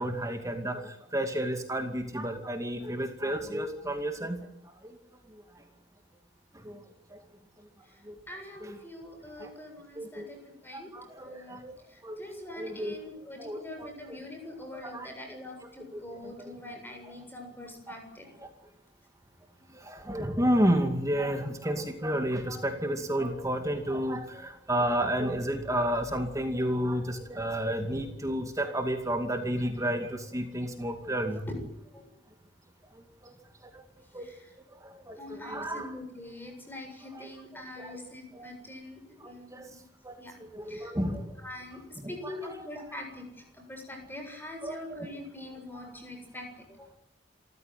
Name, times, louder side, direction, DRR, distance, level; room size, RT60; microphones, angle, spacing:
voice 1, 0.0-5.0 5.3-5.6 6.5-6.8 7.1-7.2 8.0-8.2 8.6-8.8 9.4-9.5 10.0-10.3 10.7-11.7 12.0-12.2 12.5-12.9 13.4-13.9 14.7-15.1 15.6-16.5 17.1-17.2 17.9-18.0 18.4-18.5 19.7-31.5 32.9-33.3 33.6-33.8 34.1-34.3 34.7-35.9 37.1-37.3 37.8-38.0 38.3-38.5 39.2-39.7 40.0-41.4 42.0-42.4 42.7-42.8 44.6-45.0 45.8-45.9, equal, 20° right, 5 dB, 2.4 m, -32 dB
voice 2, 8.3-10.9 11.2-11.6 11.9-18.3 31.5-31.6 31.8-32.0 34.2-34.5 35.2-39.8 40.2-40.4 40.7-40.9 41.4-46.9, left 1 dB, 10° left, 3 dB, 7.8 m, -44 dB
27.5 x 15.0 x 9.3 m, 0.77 s
head